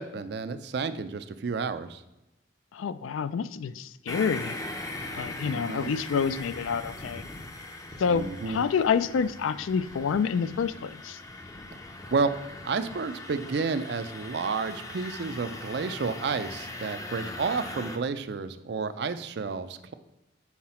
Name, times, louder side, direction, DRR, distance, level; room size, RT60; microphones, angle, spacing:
voice 1, 0.0-2.0 5.4-5.9 8.1-8.6 12.1-12.4 12.6-19.9, right 4 dB, 55° right, 12 dB, 0.4 m, -31 dB
voice 2, 2.7-4.5 5.1-7.2 8.0-11.2, left 6 dB, 85° left, 14 dB, 0.3 m, -28 dB
sound 1, 4.1-18.0, left 2 dB, 15° left, 0.5 m, -40 dB
5.8 x 4.7 x 4.2 m, 0.95 s
head